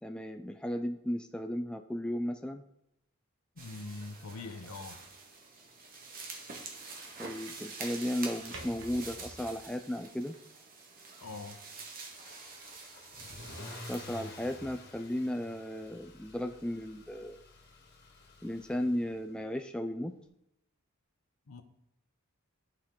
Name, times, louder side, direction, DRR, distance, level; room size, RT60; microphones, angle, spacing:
voice 1, 0.0-2.6 7.2-10.4 13.9-17.4 18.4-20.1, equal, 5° left, 6 dB, 0.3 m, -35 dB
voice 2, 3.6-5.0 11.2-11.6 21.5-21.6, left 3 dB, 75° left, 8 dB, 0.8 m, -43 dB
sound 1, 3.6-14.6, right 4 dB, 40° right, 1.2 m, -47 dB
sound 2, 4.1-10.2, right 2 dB, 60° right, 1.4 m, -53 dB
Car / Engine starting / Accelerating revving vroom, 12.2-19.4, left 2 dB, 50° left, 1.4 m, -50 dB
11.5 x 4.3 x 3.7 m, 0.83 s
head